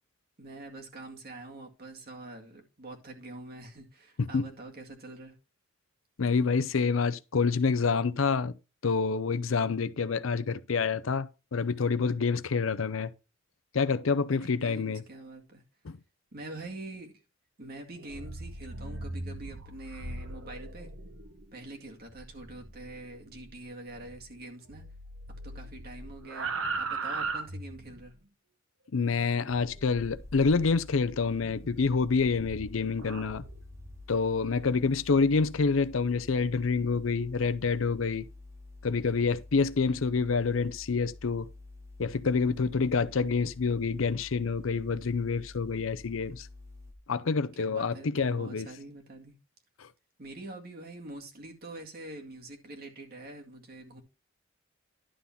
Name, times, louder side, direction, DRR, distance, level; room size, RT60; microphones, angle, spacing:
voice 1, 0.4-5.3 14.3-15.6 16.3-17.1 17.6-20.9 21.5-24.8 25.4-28.1 47.5-49.3 50.2-54.0, right 2 dB, 50° right, 2.1 m, -45 dB
voice 2, 6.2-8.5 8.8-13.1 13.7-15.0 15.9-16.0 28.9-33.4 34.1-38.3 38.8-41.5 42.0-46.5 47.1-48.7 49.8-49.9, left 4 dB, 85° left, 0.6 m, -27 dB
sound 1, 18.0-24.4 24.7-28.1 29.5-30.7 31.4-34.0, right 3 dB, 80° right, 1.1 m, -40 dB
sound 2, 30.0-46.9, left 2 dB, 15° right, 1.7 m, -49 dB
11.5 x 3.9 x 5.8 m
head